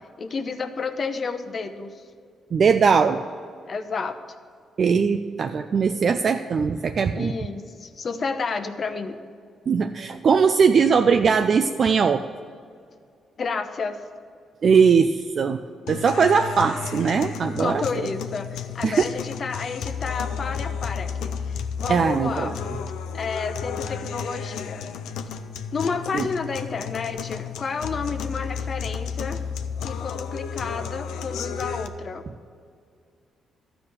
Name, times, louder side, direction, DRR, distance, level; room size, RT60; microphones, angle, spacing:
voice 1, 0.2-2.0 3.6-4.1 7.1-9.2 13.4-14.0 17.4-22.5 23.1-24.8 25.7-29.4 29.8-32.2, left 4 dB, 50° left, 8 dB, 0.8 m, -31 dB
voice 2, 2.5-3.2 4.8-7.3 9.7-12.2 14.6-15.6 15.9-17.8 18.8-19.0 21.9-22.5 26.1-26.3, right 6 dB, 55° right, 7 dB, 0.4 m, -20 dB
sound 1, 15.9-31.9, left 7 dB, 90° left, 0.5 m, -32 dB
13.0 x 4.9 x 7.2 m, 2.3 s
cardioid pair, 75°, 0 cm